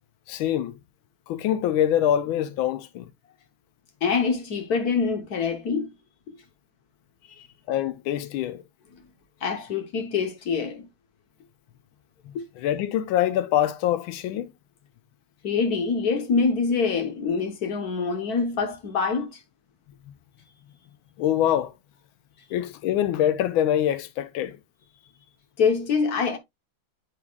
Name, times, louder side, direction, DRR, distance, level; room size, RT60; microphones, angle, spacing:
voice 1, 0.3-0.7 1.3-3.1 7.7-8.6 12.6-14.5 21.2-21.7 22.5-24.6, left 11 dB, 80° left, 1.4 m, -24 dB
voice 2, 4.0-5.9 7.4-7.5 9.4-10.9 12.3-12.4 15.4-19.3 25.6-26.4, left 5 dB, 55° left, 1.3 m, -25 dB
8.4 x 4.9 x 2.3 m
omnidirectional pair, 2.3 m